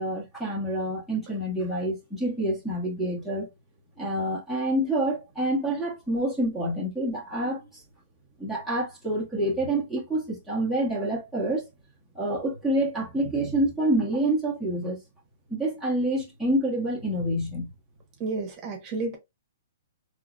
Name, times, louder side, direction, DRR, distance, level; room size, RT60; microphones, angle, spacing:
voice 1, 0.0-3.5 4.0-7.6 8.4-11.7 12.1-15.0 15.5-17.7, right 1 dB, 5° left, 1.5 m, -27 dB
voice 2, 18.2-19.2, right 3 dB, 30° right, 1.3 m, -31 dB
3.9 x 3.1 x 2.6 m
hypercardioid pair, 150°, 0 cm